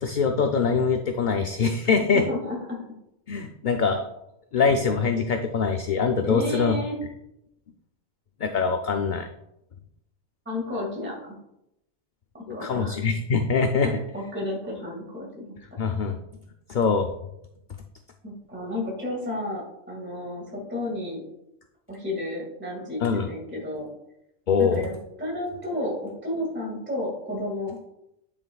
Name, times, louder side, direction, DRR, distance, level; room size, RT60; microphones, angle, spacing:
voice 1, 0.0-2.3 3.3-4.1 4.5-6.8 8.4-9.3 12.5-13.9 15.8-16.2 16.7-17.1 23.0-23.3 24.5-24.9, left 5 dB, 55° left, 5 dB, 0.6 m, -23 dB
voice 2, 2.0-2.8 6.2-7.0 10.5-11.4 12.3-12.9 13.8-15.6 18.2-21.3 21.9-23.9 24.6-27.9, left 1 dB, 10° right, -3 dB, 1.9 m, -32 dB
11.0 x 6.2 x 2.3 m, 0.83 s
omnidirectional pair, 1.2 m